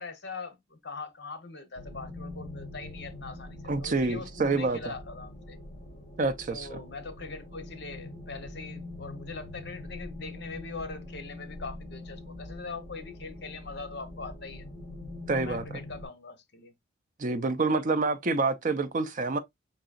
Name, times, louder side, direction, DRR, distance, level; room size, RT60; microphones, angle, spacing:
voice 1, 0.0-5.6 6.5-14.6 15.3-16.7, left 4 dB, 55° left, 0.9 m, -42 dB
sound 1, 1.7-16.1, left 2 dB, 30° left, 2.4 m, -43 dB
voice 2, 3.7-4.9 6.2-6.8 15.3-15.8 17.2-19.4, right 3 dB, 40° right, 0.5 m, -27 dB
5.2 x 3.9 x 2.3 m
head